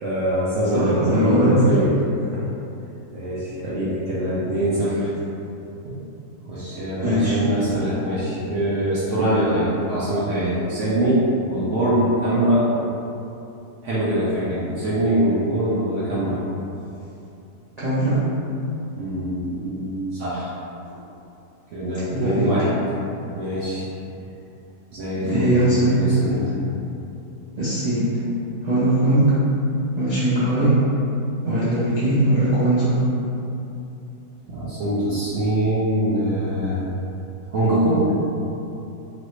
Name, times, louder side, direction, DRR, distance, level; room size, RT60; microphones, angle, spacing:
voice 1, 0.0-1.9 2.3-2.5 3.1-5.1 5.8-6.0 6.4-12.7 13.8-16.4 19.0-20.5 21.7-22.7 23.3-23.8 24.9-25.7 26.0-26.5 34.5-36.8 37.5-38.1, right 1 dB, 60° right, -10 dB, 0.9 m, -23 dB
voice 2, 0.7-1.6 7.0-7.4 17.8-18.2 22.1-22.5 25.3-26.0 27.6-28.1 28.6-29.3 30.0-30.7 31.4-33.0, right 1 dB, 45° right, -13 dB, 0.5 m, -20 dB
3.1 x 2.6 x 3.0 m, 2.8 s
omnidirectional pair, 1.7 m